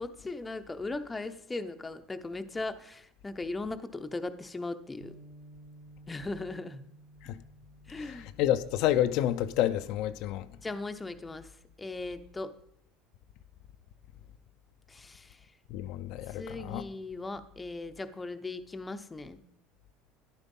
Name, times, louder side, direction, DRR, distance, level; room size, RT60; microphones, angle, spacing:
voice 1, 0.0-5.1 6.1-6.8 7.9-8.3 10.6-11.5 11.8-12.5 14.9-15.4 16.3-19.4, left 2 dB, 10° left, 0.7 m, -38 dB
Bass guitar, 5.0-11.3, right 2 dB, 80° right, 2.3 m, -56 dB
voice 2, 8.0-10.5 15.7-16.9, left 12 dB, 60° left, 0.6 m, -29 dB
13.0 x 11.0 x 5.3 m
cardioid pair, 150°, 0 cm